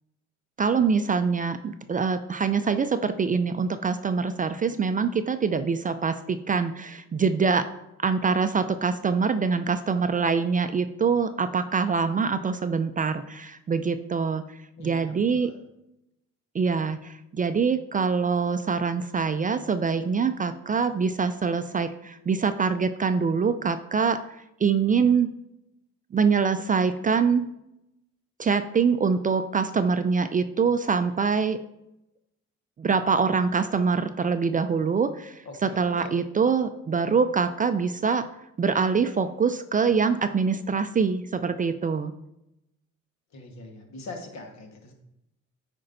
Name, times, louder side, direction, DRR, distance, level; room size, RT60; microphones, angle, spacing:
voice 1, 0.6-7.6 8.0-14.4 14.8-15.5 16.5-24.2 24.6-25.3 26.1-27.5 28.4-31.6 32.8-38.2 38.6-42.1, right 5 dB, 30° right, 10 dB, 0.3 m, -24 dB
voice 2, 14.8-15.6 35.4-36.1 43.3-44.9, left 3 dB, 65° left, 3 dB, 1.4 m, -42 dB
8.6 x 5.3 x 2.6 m, 0.85 s
cardioid pair, 90°, 30 cm